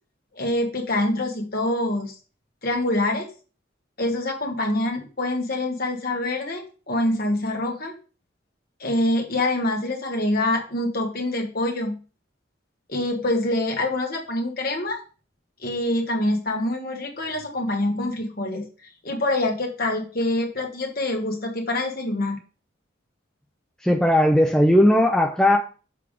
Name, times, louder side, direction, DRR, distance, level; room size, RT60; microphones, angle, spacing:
voice 1, 0.3-2.2 2.6-3.3 4.0-8.0 8.8-12.0 12.9-15.0 15.6-18.6 19.0-22.4, left 1 dB, 50° left, 1.6 m, -25 dB
voice 2, 23.8-25.6, left 1 dB, 5° left, 0.5 m, -17 dB
6.8 x 3.6 x 5.1 m
head